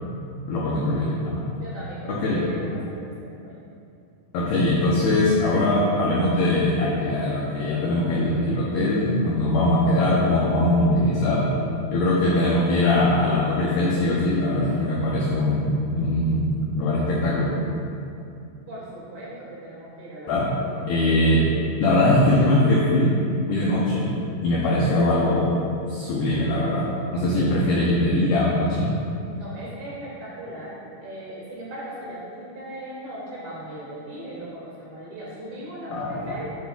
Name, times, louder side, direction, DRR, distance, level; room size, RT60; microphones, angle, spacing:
voice 1, 0.5-1.5 2.1-2.4 4.3-11.5 11.9-17.5 20.3-20.5 20.9-21.5 21.8-23.2 23.5-24.1 24.4-25.6 25.9-26.9 27.1-28.9 35.9-36.3, left 1 dB, 85° left, -5 dB, 2.1 m, -21 dB
voice 2, 1.6-3.6 18.7-20.3 27.3-27.5 29.3-36.5, right 1 dB, 55° right, -7 dB, 3.6 m, -38 dB
12.5 x 8.0 x 2.4 m, 2.6 s
omnidirectional pair, 5.7 m